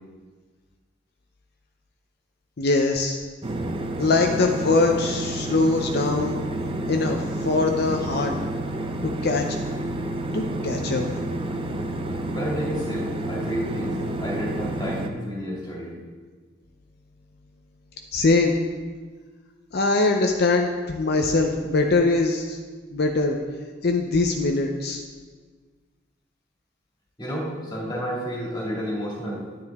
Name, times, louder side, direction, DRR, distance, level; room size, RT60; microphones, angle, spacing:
voice 1, 2.6-3.2 4.0-6.4 6.9-8.3 9.0-9.4 10.3-11.0 18.1-18.6 19.7-22.6 22.9-23.4 23.8-25.0, left 3 dB, 55° left, 3 dB, 0.6 m, -22 dB
sound 1, 3.4-15.1, right 1 dB, 25° right, 0.6 m, -29 dB
voice 2, 12.3-15.9 27.2-29.4, equal, 20° left, -4 dB, 2.2 m, -30 dB
9.8 x 9.6 x 3.5 m, 1.5 s
head